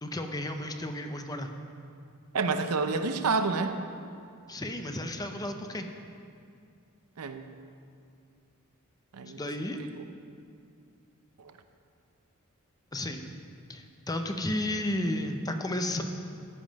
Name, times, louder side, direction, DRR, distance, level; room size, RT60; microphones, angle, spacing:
voice 1, 0.0-1.5 4.5-5.9 9.3-9.9 12.9-13.3 13.7-16.0, left 1 dB, 15° left, 6 dB, 0.6 m, -33 dB
voice 2, 2.3-3.8 7.2-7.4 9.1-9.4 11.4-11.5, right 4 dB, 90° right, 8 dB, 0.6 m, -28 dB
14.0 x 5.5 x 5.2 m, 2.4 s
head